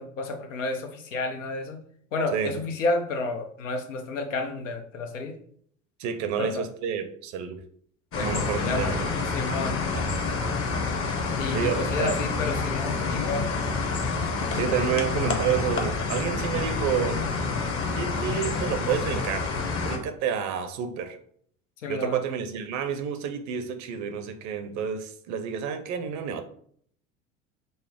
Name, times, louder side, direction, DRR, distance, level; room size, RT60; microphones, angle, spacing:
voice 1, 0.0-1.8 2.1-5.3 6.4-6.7 8.1-9.0 9.3-9.8 11.4-13.5 21.8-22.2, left 3 dB, 80° left, 0.8 m, -31 dB
voice 2, 6.0-7.6 8.2-9.1 9.9-10.2 11.5-12.1 14.5-17.2 17.9-19.5 19.8-21.2 21.9-26.4, right 8 dB, 50° right, 0.7 m, -29 dB
sound 1, 8.1-20.0, left 4 dB, 35° left, 0.9 m, -28 dB
5.3 x 2.1 x 3.5 m
hypercardioid pair, 70°, 38 cm